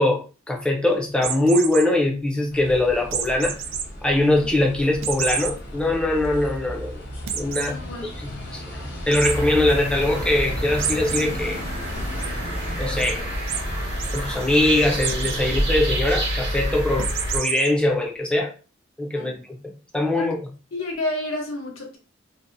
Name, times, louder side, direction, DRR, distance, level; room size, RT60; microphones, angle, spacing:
voice 1, 0.0-3.6 4.0-7.0 7.3-7.8 8.2-8.6 9.1-11.6 12.8-13.3 14.1-18.5 19.0-19.3 19.9-20.4, left 1 dB, 5° left, 0.4 m, -22 dB
sound 1, 1.2-1.8 3.1-3.8 4.3-4.4 5.0-5.5 6.0-6.1 6.4-6.5 7.3-7.7 9.1-9.3 10.8-11.2 11.7-12.3 13.0-13.1 13.5-13.6 13.9-14.2 15.0-15.4 17.0-17.7, right 8 dB, 80° right, 0.4 m, -28 dB
sound 2, 2.5-16.0, equal, 60° left, 0.9 m, -35 dB
voice 2, 7.7-8.1 19.1-19.4 20.2-20.3 20.7-22.0, left 2 dB, 85° left, 0.7 m, -30 dB
sound 3, 9.2-17.4, equal, 60° right, 0.9 m, -28 dB
2.7 x 2.0 x 2.5 m
head